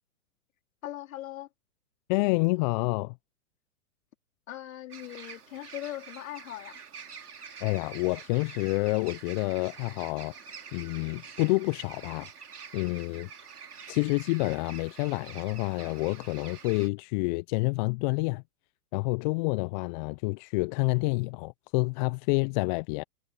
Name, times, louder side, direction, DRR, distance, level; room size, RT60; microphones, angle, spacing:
voice 1, 0.8-1.5 4.5-6.8, left 13 dB, 60° left, 3.5 m, -40 dB
voice 2, 2.1-3.1 7.6-10.3 10.7-12.3 12.7-13.3 13.9-18.4 18.9-23.0, left 26 dB, 30° left, 0.7 m, -28 dB
sound 1, 4.9-16.9, right 6 dB, 80° right, 3.7 m, -47 dB
figure-of-eight pair, 110°, 45 cm